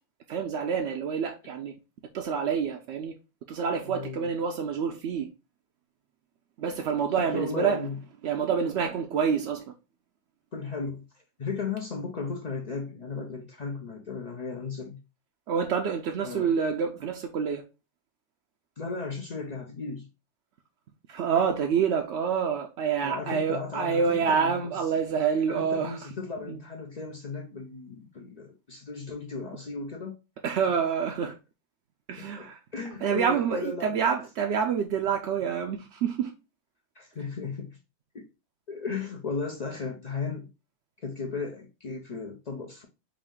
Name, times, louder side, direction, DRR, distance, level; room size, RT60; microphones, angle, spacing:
voice 1, 0.3-1.7 2.1-3.1 3.5-5.3 6.6-7.8 8.2-9.7 15.5-17.6 21.1-26.1 26.4-26.6 30.4-31.4 32.1-32.6 33.0-36.3, right 6 dB, 65° right, 0.7 m, -27 dB
voice 2, 3.9-4.3 7.2-8.0 10.5-15.0 16.2-16.5 18.8-20.1 23.0-24.7 25.5-30.1 32.4-34.0 37.0-37.8 38.1-38.3 38.7-40.5 41.0-42.9, left 4 dB, 60° left, 0.4 m, -35 dB
4.8 x 2.6 x 3.6 m
omnidirectional pair, 1.5 m